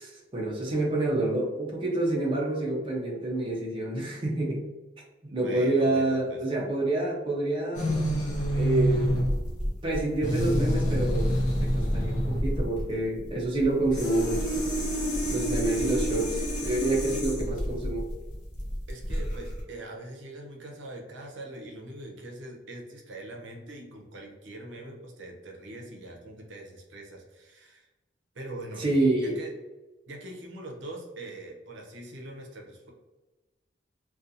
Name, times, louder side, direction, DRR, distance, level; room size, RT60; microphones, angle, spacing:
voice 1, 0.0-4.6 5.2-8.0 8.5-9.2 9.8-11.3 11.6-14.6 15.3-16.3 16.6-18.1 28.8-29.3, right 2 dB, 25° right, -3 dB, 0.5 m, -28 dB
voice 2, 5.3-6.4 15.6-16.0 16.4-16.5 17.1-17.3 18.9-27.9 28.3-29.5 30.1-32.9, right 2 dB, 80° right, 0 dB, 0.6 m, -42 dB
sound 1, 7.7-19.6, equal, 40° left, 0.6 m, -28 dB
2.5 x 2.3 x 2.6 m, 1.1 s
head